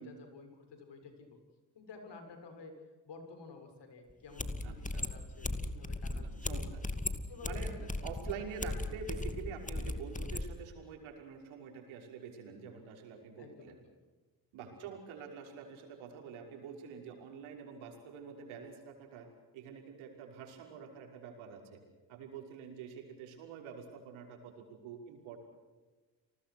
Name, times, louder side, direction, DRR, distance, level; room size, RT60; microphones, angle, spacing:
voice 1, 0.0-1.4 1.7-2.8 3.0-6.7 7.3-7.9 8.2-8.3 13.4-13.8 14.8-14.9, left 4 dB, 60° left, 6 dB, 7.0 m, -52 dB
sound 1, 4.1-4.2 4.4-10.5, left 2 dB, 15° left, 2.4 m, -37 dB
voice 2, 4.6-5.1 6.1-6.8 7.4-13.7 14.5-19.3 19.5-21.8 22.1-25.4, right 6 dB, 75° right, 3 dB, 5.8 m, -47 dB
30.0 x 20.5 x 6.3 m, 1.3 s
hypercardioid pair, 55°, 48 cm